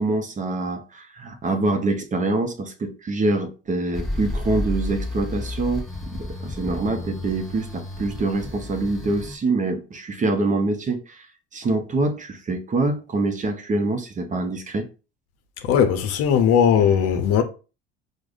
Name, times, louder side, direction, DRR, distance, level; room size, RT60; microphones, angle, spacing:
voice 1, 0.0-6.1 6.4-11.3 11.5-14.9, right 2 dB, 25° right, 0.7 m, -25 dB
sound 1, 3.9-9.4, left 2 dB, ahead, 1.1 m, -31 dB
voice 2, 15.6-17.4, left 8 dB, 55° left, 0.7 m, -18 dB
4.7 x 2.1 x 2.5 m
hypercardioid pair, 75°, 29 cm